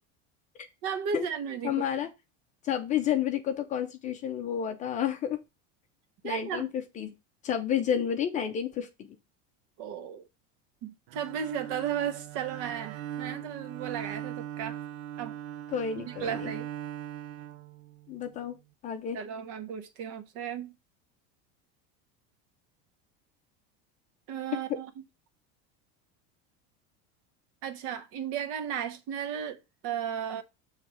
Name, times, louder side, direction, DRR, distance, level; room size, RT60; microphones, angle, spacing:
voice 1, 0.8-1.8 6.2-6.7 9.8-10.3 10.8-14.8 15.2-15.4 16.1-16.7 19.1-20.7 24.3-24.9 27.6-30.4, right 8 dB, 45° right, 1.0 m, -35 dB
voice 2, 1.6-2.1 2.6-5.4 6.2-6.7 7.0-7.1 7.4-9.1 15.7-16.5 18.1-18.5 18.8-19.2, left 9 dB, 25° left, 0.6 m, -30 dB
Bowed string instrument, 11.1-18.3, right 11 dB, 75° right, 0.7 m, -40 dB
6.8 x 3.3 x 6.1 m
cardioid pair, 175°, 32 cm